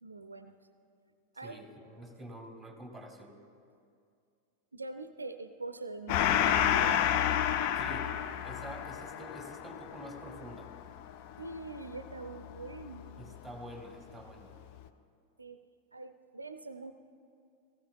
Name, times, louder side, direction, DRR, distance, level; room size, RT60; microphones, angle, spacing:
voice 1, 0.0-0.5 1.4-2.0 4.7-7.1 11.4-13.3 15.4-15.6 15.9-16.9, right 3 dB, 80° right, 10 dB, 0.4 m, -44 dB
voice 2, 1.4-3.4 7.8-8.1 8.4-10.7 13.2-14.6, equal, ahead, 2 dB, 2.0 m, -47 dB
Gong, 6.1-13.0, left 10 dB, 45° left, 0.5 m, -30 dB
18.0 x 14.5 x 2.2 m, 2.3 s
figure-of-eight pair, 90°, 0 cm